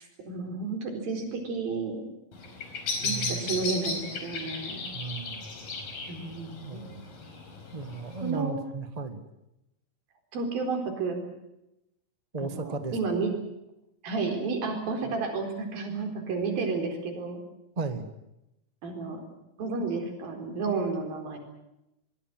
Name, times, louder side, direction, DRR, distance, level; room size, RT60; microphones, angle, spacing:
voice 1, 0.0-2.0 3.0-4.9 6.1-6.9 8.2-8.6 10.3-11.2 12.4-13.3 14.0-17.4 18.8-19.2 19.6-21.4, right 4 dB, 85° right, 5 dB, 6.1 m, -31 dB
Bird vocalization bird call bird song, 2.3-8.3, left 3 dB, 70° left, 6.2 m, -36 dB
voice 2, 3.0-3.5 4.9-5.4 6.7-7.1 7.7-9.2 12.3-12.9 15.0-15.1 17.7-18.1, right 4 dB, 20° right, 9 dB, 0.9 m, -35 dB
23.0 x 22.5 x 7.8 m, 0.87 s
omnidirectional pair, 4.1 m